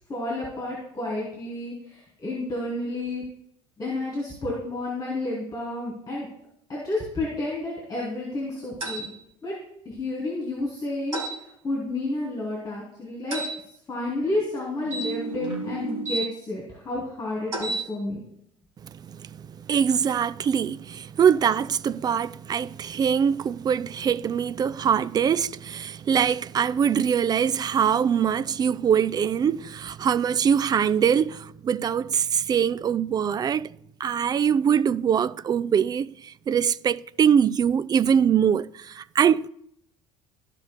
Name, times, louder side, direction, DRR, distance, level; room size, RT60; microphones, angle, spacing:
voice 1, 0.1-3.2 3.8-6.3 6.7-9.1 9.4-9.6 9.8-11.2 11.6-13.4 13.9-18.2, left 2 dB, 20° left, 2.9 m, -30 dB
sound 1, 8.8-9.1 11.1-11.4 13.3-13.5 14.9-16.2 17.5-17.8, right 2 dB, 80° right, 1.8 m, -30 dB
voice 2, 18.8-33.7 34.0-39.5, right 8 dB, 25° right, 0.4 m, -23 dB
14.5 x 5.3 x 2.2 m
figure-of-eight pair, 60°, 17 cm